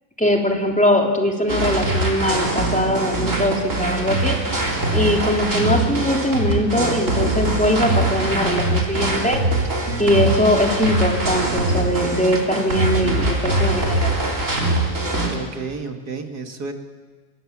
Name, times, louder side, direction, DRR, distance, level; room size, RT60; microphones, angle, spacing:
voice 1, 0.2-4.3 4.9-9.4 10.0-14.1, left 1 dB, 5° left, 0 dB, 3.3 m, -21 dB
sound 1, 1.5-15.3, right 1 dB, 55° right, 4.1 m, -23 dB
sound 2, 2.5-13.6, right 3 dB, 70° right, 2.0 m, -33 dB
voice 2, 15.3-16.7, right 4 dB, 90° right, 4 dB, 2.6 m, -32 dB
25.0 x 21.0 x 7.5 m, 1.4 s
omnidirectional pair, 1.6 m